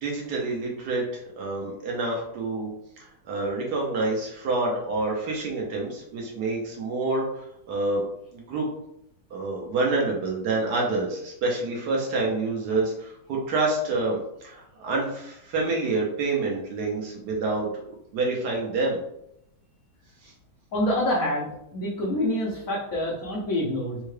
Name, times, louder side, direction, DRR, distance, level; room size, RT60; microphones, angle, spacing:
voice 1, 0.0-2.7 3.3-8.0 8.3-8.7 9.3-17.8 18.1-19.0 20.2-20.3, right 3 dB, 65° right, -1 dB, 1.1 m, -27 dB
voice 2, 20.7-24.0, left 1 dB, 65° left, -5 dB, 0.8 m, -27 dB
3.6 x 2.2 x 3.2 m, 0.78 s
omnidirectional pair, 2.2 m